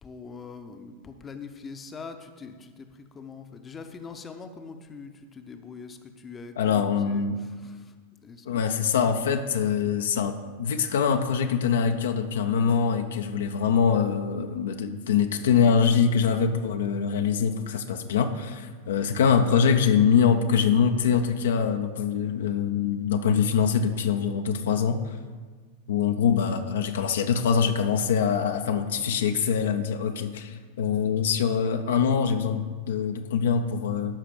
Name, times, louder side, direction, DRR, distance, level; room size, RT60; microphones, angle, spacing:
voice 1, 0.0-8.6, left 5 dB, 20° left, 7 dB, 0.8 m, -43 dB
voice 2, 6.6-7.4 8.5-25.2 25.9-34.1, left 6 dB, 60° left, 7 dB, 0.6 m, -24 dB
13.0 x 5.8 x 4.9 m, 1.5 s
figure-of-eight pair, 90°, 0 cm